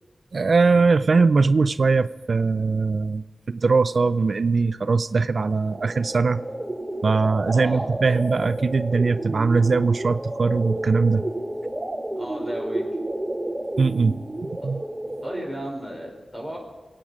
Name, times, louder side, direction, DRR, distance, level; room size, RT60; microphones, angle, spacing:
voice 1, 0.3-6.4 7.0-11.2 13.8-14.8, right 4 dB, 65° right, 14 dB, 0.4 m, -21 dB
sound 1, 5.7-15.7, right 1 dB, 25° right, 1.2 m, -31 dB
voice 2, 7.5-7.8 12.2-12.8 14.6-14.7 15.2-16.6, equal, 20° left, 0 dB, 4.8 m, -34 dB
22.5 x 8.8 x 5.0 m, 1.3 s
cardioid pair, 60°, 0 cm